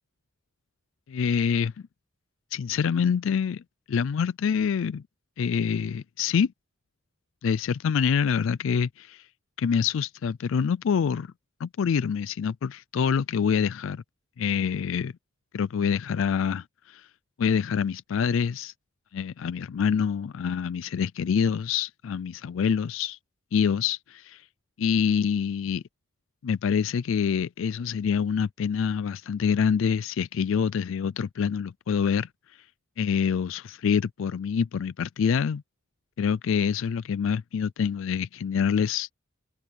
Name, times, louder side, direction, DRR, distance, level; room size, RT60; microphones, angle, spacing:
voice 1, 1.1-1.7 2.5-3.6 3.9-5.0 5.4-6.5 7.4-9.2 9.6-11.3 11.6-14.0 14.4-15.1 15.5-17.1 17.4-18.7 19.1-23.2 23.5-24.4 24.8-25.8 26.4-32.3 33.0-35.6 36.2-39.1, left 7 dB, 65° left, 0.4 m, -26 dB
open air
head